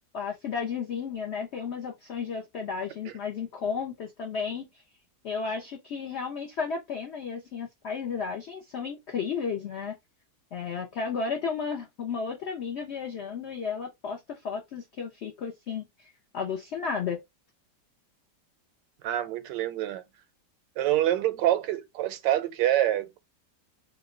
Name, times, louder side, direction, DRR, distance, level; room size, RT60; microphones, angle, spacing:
voice 1, 0.1-4.7 5.2-9.9 10.5-17.2, left 6 dB, 65° left, 0.6 m, -33 dB
voice 2, 19.0-20.0 20.8-23.2, right 13 dB, 85° right, 1.2 m, -26 dB
2.9 x 2.1 x 3.6 m
omnidirectional pair, 1.9 m